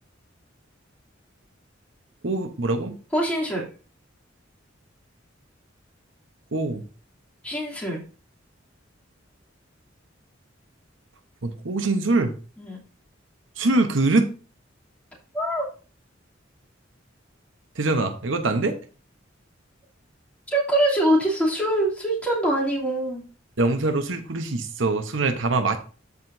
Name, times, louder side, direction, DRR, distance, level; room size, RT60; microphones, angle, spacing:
voice 1, 2.2-3.0 6.5-6.8 11.4-12.3 13.6-14.3 17.8-18.8 23.6-25.8, right 2 dB, 75° right, 7 dB, 1.0 m, -23 dB
voice 2, 3.1-3.6 7.4-8.0 12.6-12.8 15.3-15.6 20.5-23.2, right 1 dB, 10° left, -5 dB, 2.9 m, -23 dB
13.5 x 5.0 x 2.7 m, 0.35 s
head